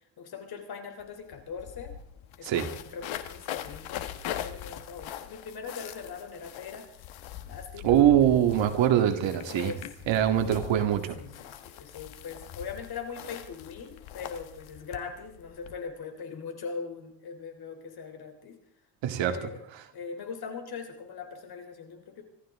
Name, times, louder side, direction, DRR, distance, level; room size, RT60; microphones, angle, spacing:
voice 1, 0.2-1.9 2.4-6.9 7.5-8.0 9.1-9.9 10.2-10.4 11.2-18.6 19.3-19.6 19.9-22.2, left 5 dB, 50° left, 5 dB, 3.3 m, -41 dB
sound 1, 1.0-1.1 1.3-15.8, left 11 dB, 75° left, 1.5 m, -41 dB
voice 2, 7.8-9.7 10.1-11.2 19.0-19.5, right 11 dB, 70° right, 7 dB, 2.0 m, -23 dB
25.5 x 14.0 x 3.6 m, 0.67 s
cardioid pair, 145°, 47 cm